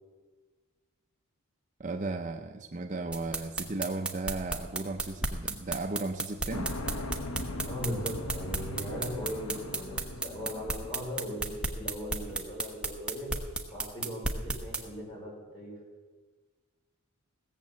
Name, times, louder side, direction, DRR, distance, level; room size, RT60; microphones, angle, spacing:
voice 1, 1.8-6.7, right 3 dB, 35° right, 4 dB, 0.5 m, -35 dB
sound 1, 3.1-14.8, right 3 dB, 5° right, 0.9 m, -33 dB
sound 2, 6.5-11.5, left 1 dB, 85° left, 1.1 m, -39 dB
voice 2, 7.7-13.3 13.7-15.7, equal, 20° left, -4 dB, 5.2 m, -38 dB
17.0 x 7.3 x 7.5 m, 1.4 s
head